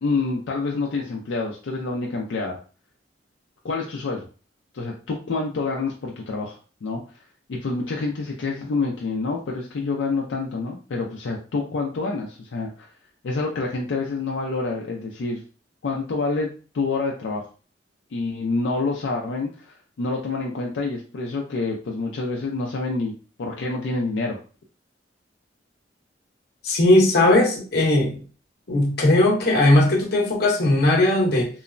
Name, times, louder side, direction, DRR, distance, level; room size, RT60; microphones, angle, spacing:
voice 1, 0.0-2.6 3.6-4.3 4.7-7.0 7.5-12.9 13.2-15.4 15.8-17.4 18.1-23.1 23.4-24.4, left 3 dB, 80° left, 0 dB, 0.4 m, -27 dB
voice 2, 26.6-28.2 28.7-31.5, left 1 dB, 60° left, -1 dB, 0.8 m, -18 dB
2.9 x 2.0 x 2.5 m, 0.37 s
head